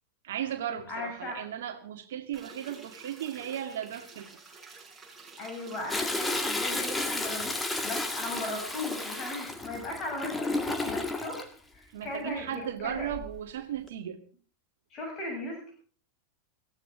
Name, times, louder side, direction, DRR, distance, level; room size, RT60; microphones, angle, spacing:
voice 1, 0.2-4.3 11.9-14.2, right 10 dB, 60° right, 2.1 m, -36 dB
voice 2, 0.9-1.4 5.4-11.4 11.7-13.1 14.9-15.7, left 2 dB, 30° left, 7.5 m, -37 dB
sound 1, 2.3-9.2, right 4 dB, 10° right, 6.5 m, -50 dB
Toilet flush, 5.9-11.5 12.9-13.4 13.9-14.0, left 2 dB, 10° left, 2.0 m, -32 dB
21.0 x 15.5 x 3.8 m
figure-of-eight pair, 90°, 0 cm